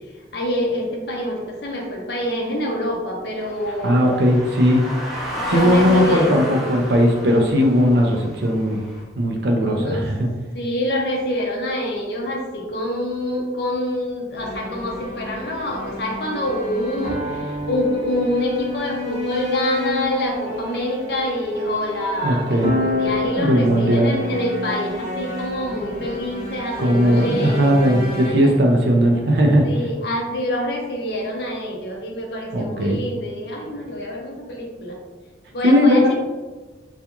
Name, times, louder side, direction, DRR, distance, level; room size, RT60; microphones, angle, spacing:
voice 1, 0.3-4.2 5.5-6.6 9.6-10.1 10.5-27.7 28.2-28.5 29.6-35.0 35.5-36.1, left 1 dB, 60° left, 0 dB, 0.5 m, -26 dB
sound 1, 3.4-9.0, equal, ahead, 0.6 m, -31 dB
voice 2, 3.8-4.8 5.5-8.8 9.2-10.3 22.2-22.7 23.4-24.1 26.8-29.7 32.5-33.0 35.6-36.1, equal, 60° right, 2 dB, 0.4 m, -17 dB
sound 2, 14.4-29.7, left 2 dB, 45° right, 0.9 m, -30 dB
2.4 x 2.3 x 2.9 m, 1.3 s
head